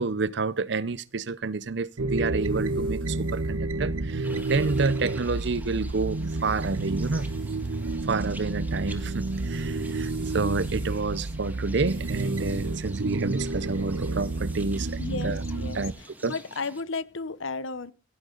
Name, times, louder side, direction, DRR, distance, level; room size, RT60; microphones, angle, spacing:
voice 1, 0.0-7.3 8.0-15.4 15.7-15.9 16.2-16.3, right 3 dB, 55° right, 0.6 m, -29 dB
sound 1, 2.0-15.9, right 2 dB, 90° right, 1.0 m, -30 dB
sound 2, 2.2-5.7 6.4-8.0 8.4-16.3, right 6 dB, 25° right, 2.9 m, -56 dB
sound 3, 4.2-16.8, right 2 dB, 10° right, 1.9 m, -48 dB
voice 2, 15.0-17.9, left 4 dB, 65° left, 0.9 m, -34 dB
16.0 x 11.5 x 3.9 m
head